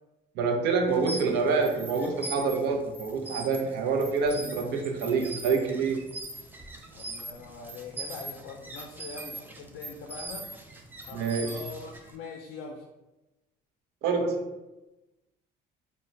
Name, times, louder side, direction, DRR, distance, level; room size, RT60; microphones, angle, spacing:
voice 1, 0.4-6.0 11.1-11.6 14.0-14.5, right 4 dB, 80° right, 3 dB, 0.5 m, -27 dB
sound 1, 0.9-12.2, right 2 dB, 10° right, 0.3 m, -42 dB
voice 2, 6.9-10.5 11.1-12.8, left 4 dB, 75° left, 1 dB, 0.4 m, -42 dB
2.1 x 2.1 x 3.7 m, 1.0 s
cardioid pair, 110°, 17 cm